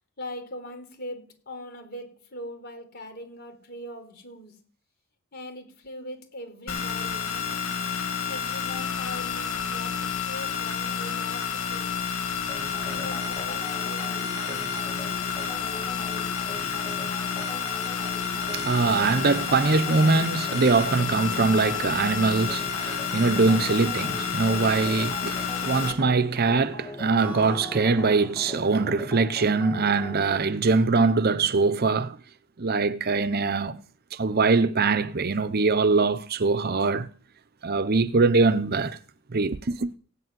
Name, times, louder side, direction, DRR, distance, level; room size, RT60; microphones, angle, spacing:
voice 1, 0.2-4.6 5.3-7.5 8.2-11.9 12.8-14.9, left 1 dB, 50° left, 4.2 m, -41 dB
sound 1, 6.7-25.9, left 6 dB, 80° left, 2.3 m, -30 dB
sound 2, 12.5-30.4, left 2 dB, 20° left, 1.7 m, -41 dB
voice 2, 18.3-32.2 32.6-33.8 34.1-37.1 37.6-39.0 39.3-39.9, right 4 dB, 50° right, 0.8 m, -23 dB
Strum, 27.2-31.4, left 1 dB, 10° right, 4.8 m, -44 dB
16.5 x 8.5 x 9.3 m
head